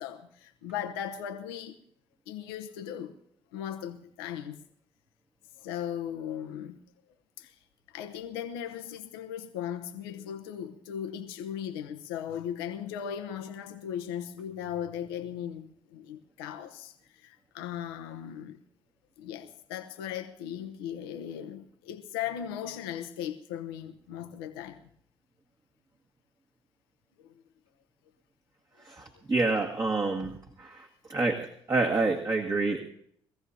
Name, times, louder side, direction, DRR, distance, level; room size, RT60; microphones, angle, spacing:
voice 1, 0.0-1.8 2.3-3.2 3.5-4.6 5.6-6.8 7.4-7.6 7.9-18.6 19.2-24.8 27.2-27.3, left 9 dB, 85° left, 0.9 m, -38 dB
voice 2, 28.8-30.3 30.6-32.8, right 3 dB, 30° right, 2.0 m, -28 dB
22.5 x 15.0 x 2.8 m
hypercardioid pair, 50°, 12 cm